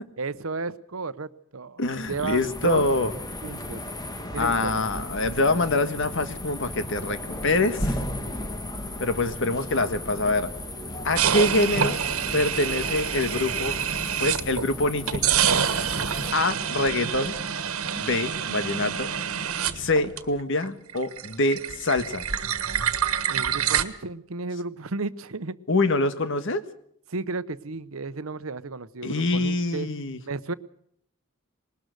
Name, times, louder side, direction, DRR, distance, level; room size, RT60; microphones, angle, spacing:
voice 1, 0.2-2.8 3.4-3.8 4.3-4.8 9.5-9.9 23.3-25.6 27.1-29.9 30.3-30.5, right 3 dB, 70° right, 15 dB, 0.9 m, -33 dB
voice 2, 1.8-3.1 4.4-8.0 9.0-10.5 11.0-12.0 12.3-13.8 14.2-15.2 16.3-17.3 17.9-19.1 19.7-22.2 25.7-26.6 29.0-30.2, left 2 dB, 60° left, 11 dB, 1.6 m, -25 dB
sound 1, 1.8-16.3, left 1 dB, 20° left, 1.9 m, -35 dB
sound 2, 11.2-14.7 15.1-20.6 20.9-23.8, right 8 dB, 85° right, 1.5 m, -27 dB
21.0 x 19.5 x 6.6 m, 0.70 s
head